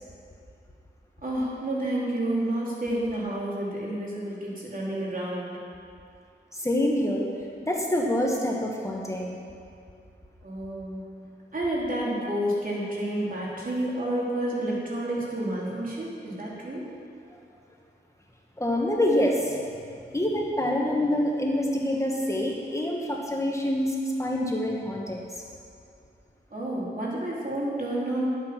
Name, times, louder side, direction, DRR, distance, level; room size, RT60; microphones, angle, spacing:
voice 1, 1.2-5.6 10.4-11.1 11.5-16.9 26.5-28.2, right 1 dB, 45° right, -5 dB, 3.2 m, -30 dB
voice 2, 6.5-7.3 7.6-9.4 18.6-19.6 20.1-25.2, left 1 dB, 15° left, -1 dB, 1.4 m, -26 dB
11.0 x 8.5 x 5.9 m, 2.4 s
wide cardioid pair, 80°, 19 cm